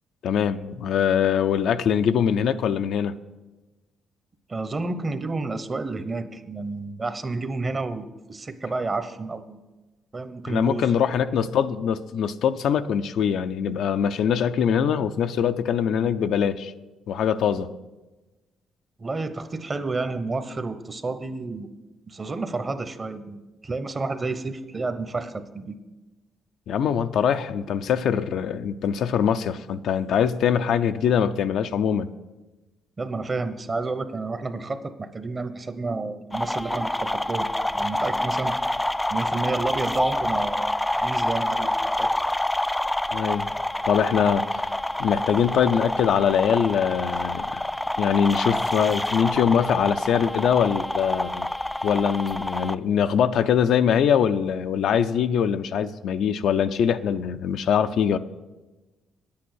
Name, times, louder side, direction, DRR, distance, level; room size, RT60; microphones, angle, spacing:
voice 1, 0.2-3.2 10.5-16.7 17.1-17.7 26.7-32.1 43.1-43.5 43.9-44.7 45.0-47.6 48.0-51.5 51.8-58.2, left 8 dB, 75° left, 10 dB, 0.5 m, -23 dB
voice 2, 4.5-9.6 10.1-10.9 19.0-21.7 22.1-25.8 33.0-37.5 37.7-38.7 39.1-42.1, right 3 dB, 30° right, 11 dB, 0.9 m, -30 dB
sound 1, 36.3-52.7, left 1 dB, 10° left, 0.3 m, -27 dB
9.9 x 8.6 x 6.3 m, 1.1 s
cardioid pair, 90°, 0 cm